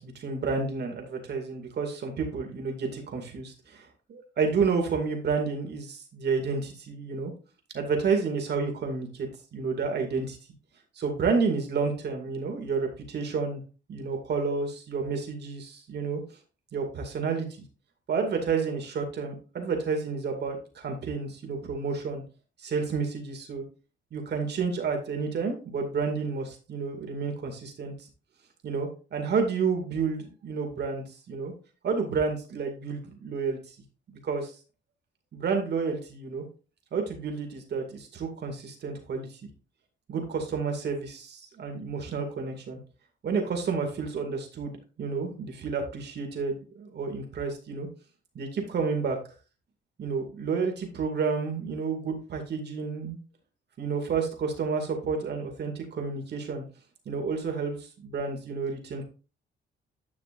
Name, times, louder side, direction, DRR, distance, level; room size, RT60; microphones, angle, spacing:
voice 1, 0.0-7.3 7.7-10.4 11.0-13.6 13.9-16.2 16.7-17.5 18.1-22.2 22.6-23.6 24.1-27.9 28.6-31.5 31.8-33.7 34.1-34.5 35.3-36.4 36.9-39.4 40.1-42.8 43.2-47.9 48.3-49.2 50.0-53.2 53.8-56.6 57.1-59.1, right 5 dB, 55° right, 3 dB, 2.4 m, -30 dB
10.5 x 5.9 x 2.6 m, 0.36 s
cardioid pair, 90°, 20 cm